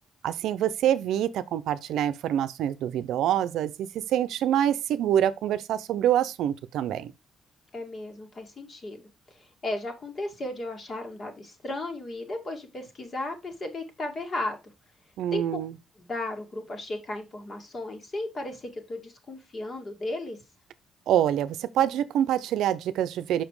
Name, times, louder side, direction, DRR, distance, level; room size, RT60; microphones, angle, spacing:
voice 1, 0.2-7.1 15.2-15.7 21.1-23.4, right 11 dB, 80° right, 0.6 m, -26 dB
voice 2, 7.7-14.6 15.3-15.4 16.0-20.4, left 2 dB, 40° left, 2.3 m, -35 dB
5.9 x 5.1 x 4.7 m
cardioid pair, 90°, 0 cm